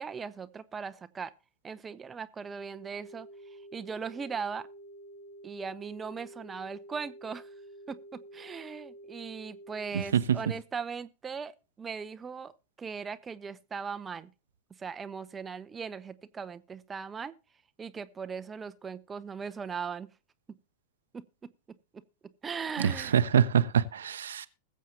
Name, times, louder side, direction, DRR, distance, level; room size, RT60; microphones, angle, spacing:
voice 1, 0.0-1.3 1.6-3.3 3.7-4.7 5.4-7.5 7.9-11.5 11.8-12.5 12.8-14.3 14.8-17.3 17.8-20.1 21.1-21.2 22.4-23.2, right 6 dB, 20° right, 0.6 m, -39 dB
sound 1, 2.7-10.1, right 1 dB, 80° left, 1.8 m, -49 dB
voice 2, 9.9-10.4 22.8-24.5, right 8 dB, 65° right, 0.7 m, -25 dB
21.0 x 7.4 x 2.8 m
figure-of-eight pair, 90°, 0 cm